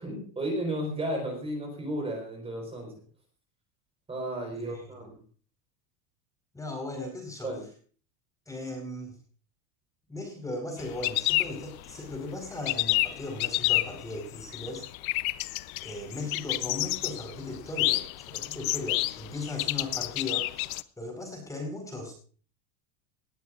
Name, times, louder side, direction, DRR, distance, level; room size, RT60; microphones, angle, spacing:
voice 1, 0.0-2.9 4.1-5.2 7.4-7.6 16.1-16.2, right 1 dB, 15° right, 2 dB, 4.6 m, -33 dB
voice 2, 4.5-5.1 6.5-7.6 8.5-9.2 10.1-14.8 15.8-22.1, left 2 dB, 5° left, 3 dB, 4.7 m, -37 dB
sound 1, 10.8-12.2 12.5-20.8, left 19 dB, 65° left, 0.9 m, -29 dB
19.5 x 15.0 x 2.6 m, 0.41 s
supercardioid pair, 160°, 45 cm